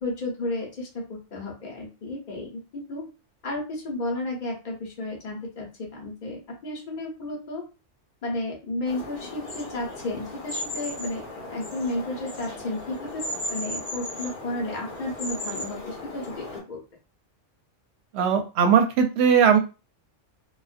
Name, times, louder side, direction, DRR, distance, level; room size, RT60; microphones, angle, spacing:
voice 1, 0.0-3.0 3.4-7.6 8.2-13.2 13.5-16.8, left 2 dB, 40° left, -2 dB, 0.9 m, -33 dB
sound 1, 8.8-16.6, left 1 dB, 60° left, 1.3 m, -36 dB
voice 2, 18.1-19.6, right 7 dB, 70° right, 5 dB, 0.8 m, -19 dB
2.5 x 2.2 x 2.5 m, 0.31 s
omnidirectional pair, 1.2 m